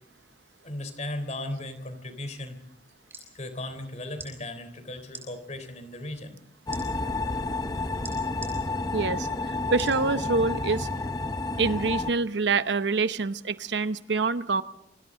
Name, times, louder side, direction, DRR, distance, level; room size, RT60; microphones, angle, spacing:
voice 1, 0.6-2.6 3.3-6.4, left 1 dB, 40° left, 9 dB, 3.6 m, -36 dB
sound 1, 3.1-3.3 4.1-4.3 5.1-5.3 6.7-6.8 8.0-8.5 9.8-10.0 10.6-10.7, right 3 dB, 10° right, 5.6 m, -41 dB
sound 2, 6.7-12.1, left 3 dB, 20° left, 0.9 m, -30 dB
voice 2, 8.9-10.9 11.6-14.6, right 4 dB, 70° right, 13 dB, 0.8 m, -26 dB
28.0 x 24.5 x 3.8 m, 0.79 s
head